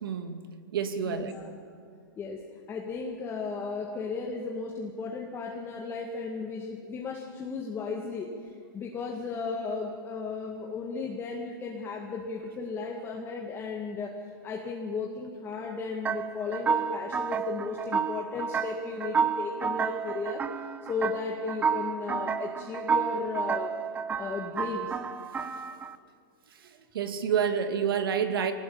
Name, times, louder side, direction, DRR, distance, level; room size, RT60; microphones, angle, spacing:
voice 1, 0.0-0.4 0.7-1.3 26.9-28.5, right 7 dB, 70° right, 7 dB, 2.4 m, -28 dB
voice 2, 1.0-1.5 2.2-2.4 2.7-14.2 14.4-20.4 20.9-23.8 24.1-24.9, left 4 dB, 20° left, 0 dB, 2.0 m, -35 dB
sound 1, 16.0-26.0, right 6 dB, 15° right, 0.6 m, -31 dB
23.5 x 18.5 x 8.7 m, 2.2 s
hypercardioid pair, 135°, 12 cm